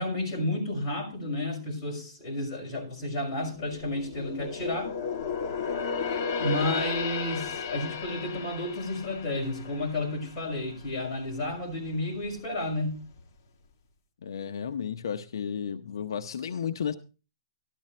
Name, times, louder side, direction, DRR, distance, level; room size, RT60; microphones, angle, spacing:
voice 1, 0.0-4.9 6.4-13.0, left 1 dB, 25° left, 6.1 m, -31 dB
sound 1, 3.5-11.0 11.4-11.6 12.1-12.9 13.2-13.3, left 5 dB, 45° left, 1.7 m, -34 dB
voice 2, 14.2-16.9, left 7 dB, 75° left, 0.7 m, -33 dB
13.5 x 12.0 x 3.2 m
hypercardioid pair, 165°, 2 cm